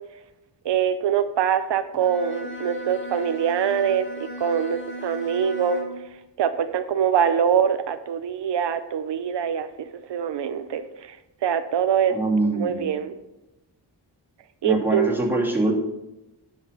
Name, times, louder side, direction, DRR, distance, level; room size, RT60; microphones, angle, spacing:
voice 1, 0.6-5.8 6.4-11.2 11.4-12.2 12.5-13.2 14.6-15.1, right 8 dB, 80° right, 10 dB, 0.6 m, -24 dB
Bowed string instrument, 1.9-6.1, left 2 dB, 30° left, 1.6 m, -37 dB
voice 2, 12.1-12.9 14.6-15.7, right 2 dB, 5° right, -4 dB, 2.5 m, -23 dB
9.3 x 5.8 x 5.4 m, 0.95 s
wide cardioid pair, 85°, 42 cm